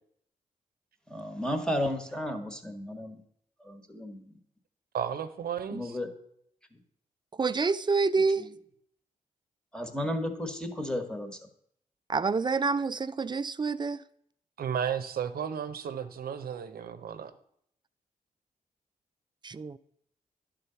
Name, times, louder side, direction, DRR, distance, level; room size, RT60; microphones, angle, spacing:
voice 1, 1.1-3.2 3.7-4.2 5.7-6.1 9.7-11.3, left 1 dB, 5° left, 1.3 m, -33 dB
voice 2, 4.9-6.0 14.6-17.3, right 8 dB, 80° right, 0.7 m, -33 dB
voice 3, 7.4-8.4 12.1-14.0 19.4-19.8, right 4 dB, 30° right, 0.4 m, -27 dB
10.5 x 3.9 x 5.7 m
cardioid pair, 55°, 15 cm